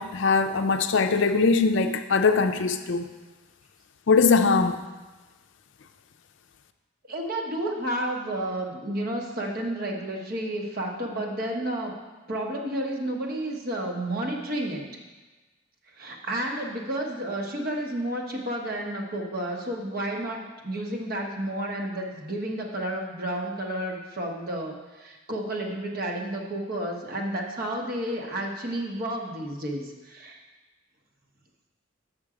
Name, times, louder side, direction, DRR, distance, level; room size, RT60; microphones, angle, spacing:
voice 1, 0.0-3.0 4.1-4.8, left 4 dB, 60° left, 8 dB, 0.5 m, -21 dB
voice 2, 7.1-11.9 12.3-14.9 16.0-30.4, right 1 dB, 45° right, 0 dB, 1.1 m, -31 dB
7.4 x 6.2 x 4.9 m, 1.2 s
head